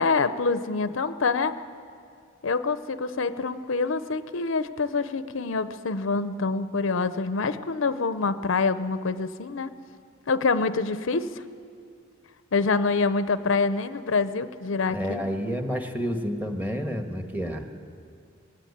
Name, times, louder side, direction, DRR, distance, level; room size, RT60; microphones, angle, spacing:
voice 1, 0.0-1.5 2.4-9.7 10.3-11.3 12.5-15.2, left 4 dB, 70° left, 12 dB, 0.6 m, -26 dB
voice 2, 14.9-17.6, equal, 10° right, 4 dB, 1.4 m, -29 dB
20.0 x 16.5 x 8.6 m, 2.3 s
head